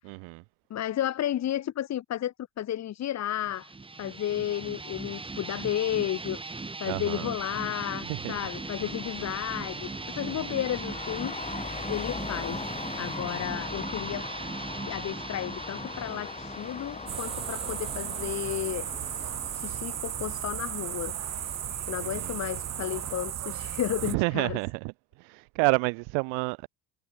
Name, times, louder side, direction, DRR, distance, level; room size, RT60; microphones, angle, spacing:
voice 1, 0.1-0.4 6.9-7.3 8.1-8.2 10.2-10.6 22.0-22.3 24.1-24.8 25.2-26.7, right 33 dB, 80° right, 1.0 m, -29 dB
voice 2, 0.7-3.7 4.0-6.4 6.8-9.9 10.1-11.4 11.9-12.6 13.0-14.3 14.9-18.9 19.1-21.2 21.9-24.6, left 11 dB, 40° left, 1.2 m, -32 dB
sound 1, 3.4-18.8, right 3 dB, 10° right, 2.5 m, -39 dB
Traffic noise roadway noise, 8.4-23.3, left 4 dB, 15° left, 2.1 m, -41 dB
sound 2, 17.1-24.1, right 11 dB, 35° right, 1.1 m, -35 dB
cardioid pair, 135°, 44 cm